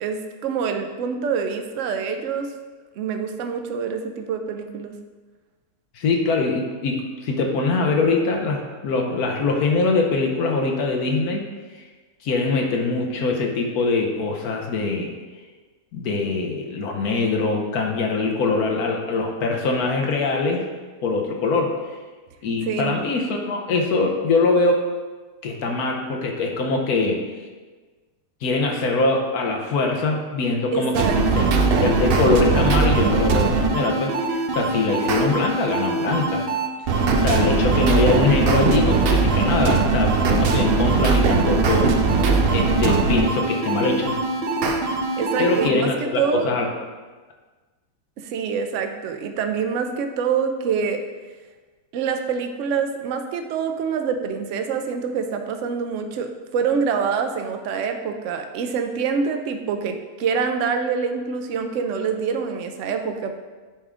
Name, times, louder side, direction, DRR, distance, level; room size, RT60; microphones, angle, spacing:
voice 1, 0.0-2.5 3.0-4.9 22.7-23.0 30.7-31.6 45.2-46.5 48.2-51.0 51.9-63.4, right 6 dB, 65° right, 6 dB, 0.8 m, -26 dB
voice 2, 5.9-11.5 12.2-15.1 15.9-20.7 21.0-21.8 22.4-24.9 25.4-27.2 28.4-31.5 31.8-36.5 37.2-41.9 42.5-44.2 45.4-46.7, left 3 dB, 70° left, 1 dB, 1.2 m, -23 dB
sound 1, 30.9-45.7, right 4 dB, 80° right, 0.5 m, -20 dB
9.8 x 3.5 x 3.7 m, 1.3 s
omnidirectional pair, 1.7 m